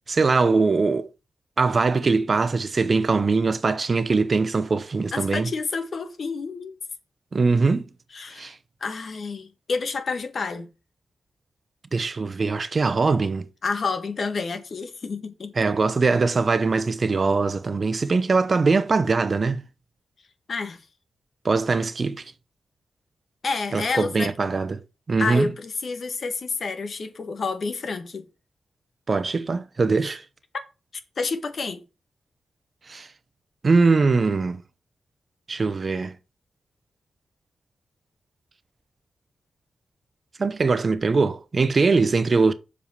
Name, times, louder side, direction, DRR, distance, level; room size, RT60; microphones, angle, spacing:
voice 1, 0.1-1.1 1.6-5.5 7.3-7.9 8.4-8.5 11.9-13.5 15.6-19.6 21.4-22.3 23.7-24.8 25.1-25.5 29.1-30.2 32.9-33.1 33.6-34.6 35.5-36.1 40.4-42.5, right 4 dB, 45° right, 0.9 m, -22 dB
voice 2, 5.1-6.7 8.1-8.5 8.8-10.7 13.6-15.7 20.5-20.8 23.4-24.3 25.2-28.2 31.2-31.8, left 4 dB, 60° left, 1.8 m, -29 dB
7.3 x 5.0 x 7.1 m
cardioid pair, 80°, 0 cm